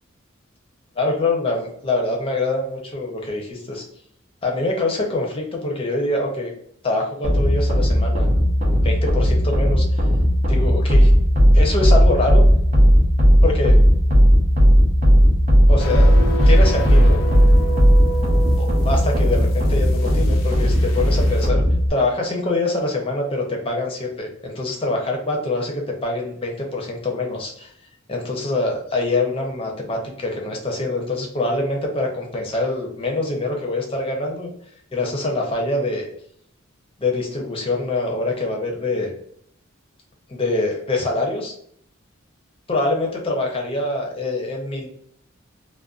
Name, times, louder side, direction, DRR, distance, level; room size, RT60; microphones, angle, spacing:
voice 1, 1.0-3.8 4.4-6.5 6.8-8.3 8.8-10.0 10.5-11.1 11.5-12.4 13.4-13.8 15.7-16.1 16.5-17.2 18.6-21.6 21.9-27.7 28.1-34.5 34.9-36.1 37.0-39.1 40.3-41.5 42.7-44.9, left 2 dB, 30° left, 0 dB, 0.5 m, -24 dB
sound 1, 7.2-21.9, equal, 35° right, 0.5 m, -15 dB
sound 2, 15.8-21.5, right 1 dB, 75° left, 0.4 m, -29 dB
2.5 x 2.2 x 2.3 m, 0.66 s
head